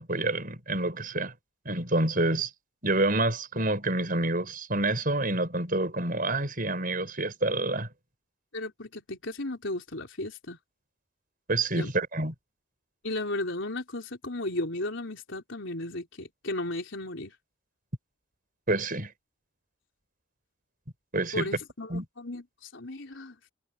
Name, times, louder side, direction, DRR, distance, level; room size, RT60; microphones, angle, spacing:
voice 1, 0.0-1.3 1.6-2.5 2.8-7.9 11.5-12.3 18.7-19.1 21.1-21.5 21.9-22.0, right 2 dB, 40° right, 6.0 m, -28 dB
voice 2, 8.5-10.6 11.7-11.9 13.0-17.3 21.3-23.4, left 2 dB, 60° left, 4.6 m, -35 dB
head